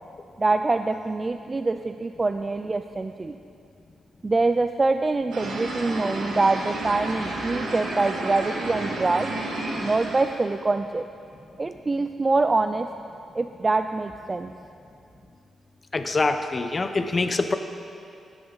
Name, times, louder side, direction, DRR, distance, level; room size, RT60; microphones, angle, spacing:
voice 1, 0.4-3.4 4.2-9.3 9.8-11.0 11.6-12.9 13.4-14.5, right 3 dB, 25° right, 8 dB, 0.3 m, -24 dB
sound 1, 5.3-10.5, right 2 dB, 85° right, 1.9 m, -31 dB
voice 2, 15.9-17.5, left 3 dB, 30° left, 8 dB, 0.7 m, -24 dB
15.5 x 10.5 x 3.9 m, 2.5 s
cardioid pair, 105°, 0 cm